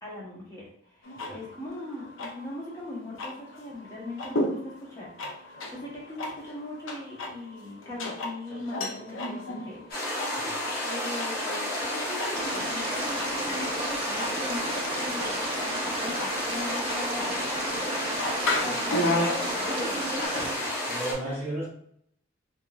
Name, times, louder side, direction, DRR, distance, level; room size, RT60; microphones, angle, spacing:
voice 1, 0.0-5.1 5.4-10.4 10.8-15.4 16.0-17.4 18.6-20.7 21.2-21.4, left 1 dB, 20° left, -5 dB, 1.0 m, -39 dB
sound 1, 1.0-20.3, left 1 dB, 85° left, 0.6 m, -35 dB
sound 2, 9.9-21.1, left 1 dB, 55° left, 1.0 m, -31 dB
sound 3, 12.3-20.5, right 3 dB, 30° right, 0.3 m, -36 dB
voice 2, 20.9-21.7, right 1 dB, 10° right, -8 dB, 0.7 m, -34 dB
3.6 x 2.6 x 2.3 m, 0.68 s
head